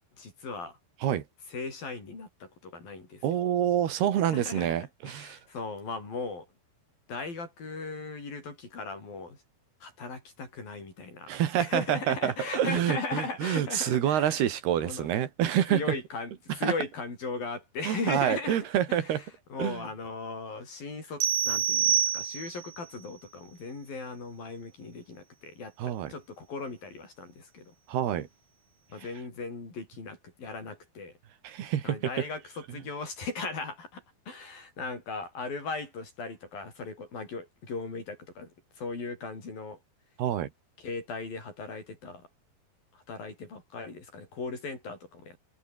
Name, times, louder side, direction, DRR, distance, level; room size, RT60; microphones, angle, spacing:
voice 1, 0.2-0.8 1.5-3.2 4.3-4.7 5.1-6.5 7.1-9.4 9.8-14.5 14.8-15.1 15.7-18.6 18.9-19.2 19.5-27.7 28.9-31.1 31.8-38.5 38.8-39.8 40.8-42.3 43.1-45.4, left 3 dB, 60° left, 9.7 m, -38 dB
voice 2, 3.2-5.4 11.3-16.0 16.5-16.7 17.8-19.2 19.6-19.8 25.8-26.1 27.9-28.3 29.0-29.1 31.4-32.3 32.7-32.8 40.2-40.5, right 10 dB, 75° right, 3.9 m, -27 dB
sound 1, 21.2-22.8, right 9 dB, 55° right, 3.3 m, -26 dB
omnidirectional pair, 4.7 m